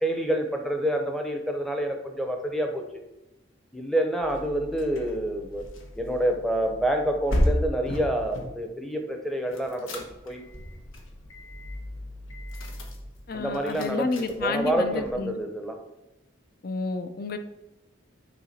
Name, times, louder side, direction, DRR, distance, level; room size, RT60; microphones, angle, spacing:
voice 1, 0.0-2.8 3.7-5.6 6.0-10.4 13.3-15.7, right 1 dB, ahead, 3 dB, 0.7 m, -28 dB
sound 1, 4.2-8.5 9.5-15.1, equal, 85° left, 1.2 m, -34 dB
voice 2, 13.3-15.4 16.6-17.4, left 3 dB, 50° left, 9 dB, 0.5 m, -30 dB
9.2 x 3.8 x 4.2 m, 0.95 s
head